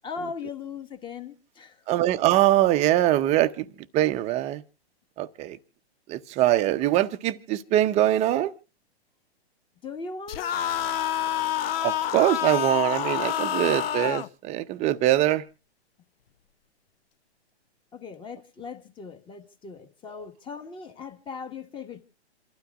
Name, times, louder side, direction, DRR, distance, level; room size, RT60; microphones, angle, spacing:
voice 1, 0.0-1.8 9.8-10.6 17.9-22.0, left 5 dB, 15° left, 1.5 m, -39 dB
voice 2, 1.9-3.6 3.9-4.6 5.2-5.6 6.1-8.5 11.8-15.4, right 14 dB, 20° right, 0.7 m, -23 dB
sound 1, 10.3-14.3, left 10 dB, 60° left, 0.8 m, -28 dB
28.0 x 12.5 x 2.4 m
hypercardioid pair, 140°, 33 cm